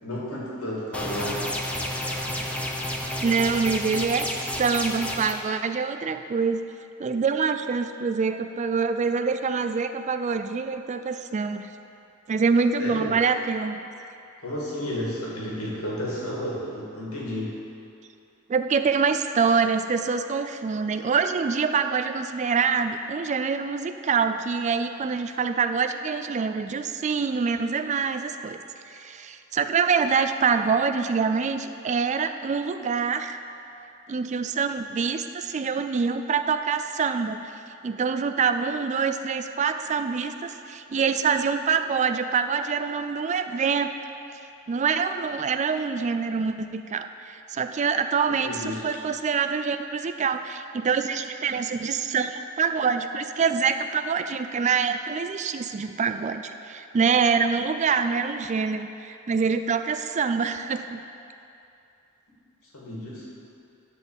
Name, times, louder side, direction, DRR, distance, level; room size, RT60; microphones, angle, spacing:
voice 1, 0.0-1.5 12.8-13.1 14.4-17.6 48.4-49.0 62.7-63.3, left 1 dB, 85° left, -5 dB, 2.2 m, -32 dB
sound 1, 0.9-5.3, left 1 dB, 5° left, 0.7 m, -30 dB
voice 2, 3.2-6.6 7.0-11.7 12.3-13.8 18.5-28.6 28.9-33.4 34.1-37.5 37.8-43.9 44.7-61.0, right 5 dB, 35° right, 9 dB, 0.3 m, -25 dB
10.5 x 4.1 x 7.3 m, 2.7 s
head